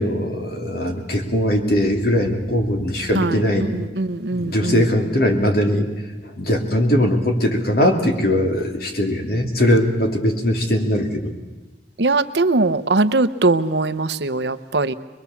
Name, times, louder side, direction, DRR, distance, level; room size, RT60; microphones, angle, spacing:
voice 1, 0.0-3.7 4.3-5.9 6.4-11.4, left 1 dB, 60° left, 3 dB, 2.8 m, -20 dB
voice 2, 3.1-4.9 12.0-14.9, right 3 dB, 70° right, 12 dB, 0.9 m, -21 dB
23.0 x 22.0 x 7.1 m, 1.2 s
head